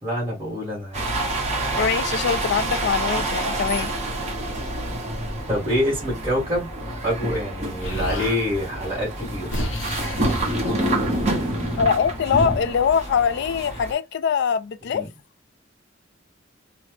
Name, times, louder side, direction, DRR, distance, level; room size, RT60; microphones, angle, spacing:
voice 1, 0.0-1.0 5.5-6.7 7.0-9.5 14.9-15.1, equal, 15° right, 1.5 m, -26 dB
sound 1, 0.9-13.9, right 1 dB, 35° right, 1.1 m, -27 dB
voice 2, 1.8-3.9 11.8-15.0, left 6 dB, 60° left, 0.3 m, -23 dB
Explosion, 7.8-8.4 9.2-13.0, left 1 dB, 85° left, 0.9 m, -32 dB
3.0 x 2.0 x 3.1 m
head